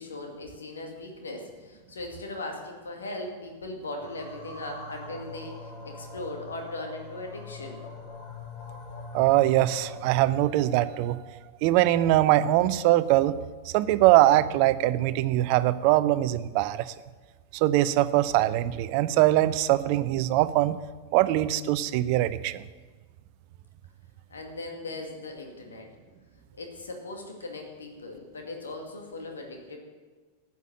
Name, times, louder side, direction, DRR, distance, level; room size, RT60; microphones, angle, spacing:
voice 1, 0.0-7.8 24.3-25.9 26.6-29.8, left 2 dB, 70° left, 2 dB, 2.2 m, -39 dB
sound 1, 4.0-10.2, left 3 dB, 40° left, 2.8 m, -43 dB
voice 2, 9.1-11.2 11.6-13.4 13.6-16.9 17.5-20.8 21.1-22.6, right 15 dB, 45° right, 15 dB, 0.6 m, -22 dB
13.0 x 9.5 x 7.5 m, 1.4 s
figure-of-eight pair, 90°, 0 cm